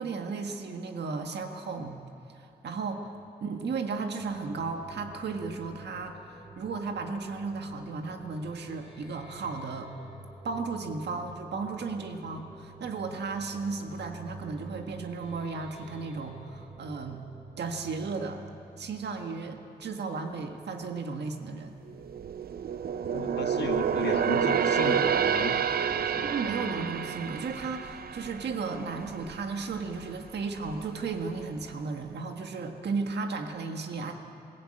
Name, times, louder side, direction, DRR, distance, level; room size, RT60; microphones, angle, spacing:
voice 1, 0.0-2.0 2.3-3.1 3.4-6.2 6.6-9.9 10.4-17.2 17.6-18.4 18.8-21.8 26.2-34.1, right 4 dB, 80° right, 4 dB, 1.7 m, -34 dB
sound 1, 4.2-19.7, right 2 dB, 10° right, 7.9 m, -49 dB
sound 2, 21.9-29.4 29.8-30.0 30.6-31.3 31.6-31.7, right 7 dB, 60° right, 0.7 m, -29 dB
voice 2, 23.1-25.6 25.9-26.8, left 6 dB, 75° left, 6 dB, 1.5 m, -36 dB
21.5 x 17.0 x 8.9 m, 2.6 s
wide cardioid pair, 160°, 17 cm